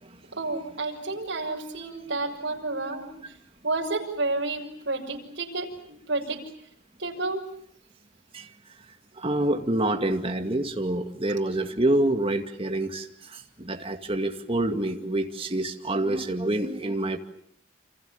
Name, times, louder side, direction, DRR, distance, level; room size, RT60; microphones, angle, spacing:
voice 1, 0.3-3.4 3.6-6.4 7.0-7.4, right 2 dB, 65° right, 1 dB, 6.5 m, -30 dB
voice 2, 9.2-17.2, right 1 dB, 30° right, 5 dB, 2.3 m, -27 dB
28.5 x 27.5 x 7.3 m, 0.64 s
head